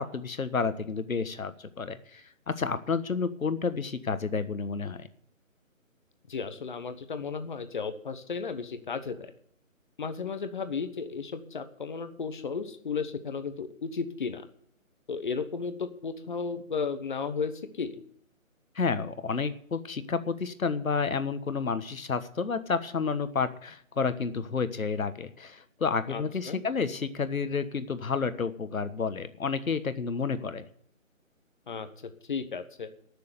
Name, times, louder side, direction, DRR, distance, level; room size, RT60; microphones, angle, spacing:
voice 1, 0.0-5.1 18.7-30.7, left 5 dB, 75° left, 12 dB, 1.4 m, -30 dB
voice 2, 6.3-9.2 10.0-14.5 15.1-17.9 26.1-26.6 31.7-31.9 32.3-32.9, left 5 dB, 35° left, 10 dB, 1.1 m, -34 dB
13.5 x 6.8 x 9.6 m, 0.64 s
figure-of-eight pair, 155°, 42 cm